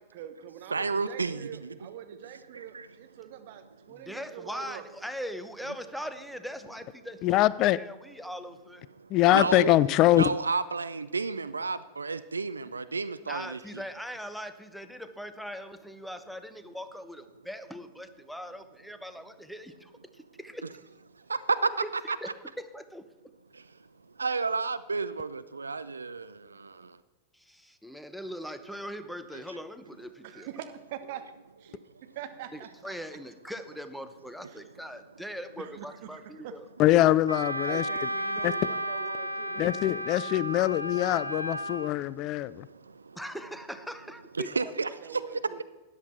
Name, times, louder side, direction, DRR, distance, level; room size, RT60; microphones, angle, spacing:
voice 1, 0.1-4.9 30.2-31.3 32.2-32.9 35.6-36.5 37.7-39.7 44.4-45.6, right 10 dB, 50° right, 1.1 m, -43 dB
voice 2, 0.7-1.6 2.7-2.9 9.3-9.7 10.2-13.6 21.3-21.4 21.9-22.3 24.2-26.3 44.4-44.9, right 4 dB, 75° right, 0.4 m, -31 dB
voice 3, 3.9-8.8 13.3-20.6 21.8-22.3 22.6-23.1 27.3-30.5 32.5-36.6 43.2-44.5, equal, ahead, 0.8 m, -41 dB
voice 4, 7.2-7.8 9.1-10.3 36.8-37.8 38.4-38.5 39.6-42.7, left 15 dB, 40° left, 0.3 m, -23 dB
Wind instrument woodwind instrument, 37.3-41.9, right 1 dB, 90° left, 0.6 m, -33 dB
13.0 x 10.0 x 4.3 m
figure-of-eight pair, 90°, 0 cm